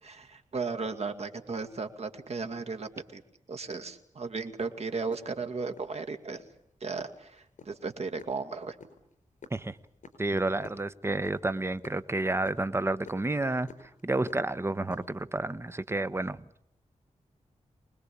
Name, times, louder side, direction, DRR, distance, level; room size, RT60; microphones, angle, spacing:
voice 1, 0.0-3.2 3.5-6.4 6.8-8.8, right 4 dB, 55° right, 7 dB, 2.2 m, -35 dB
sound 1, 4.6-5.9 6.4-6.6 7.0-10.8 11.1-14.0 14.3-15.2, left 4 dB, 75° left, 4.7 m, -50 dB
voice 2, 10.2-13.7 14.0-16.6, right 2 dB, 20° right, 14 dB, 1.0 m, -30 dB
25.0 x 20.5 x 8.6 m, 0.71 s
wide cardioid pair, 95°, 13 cm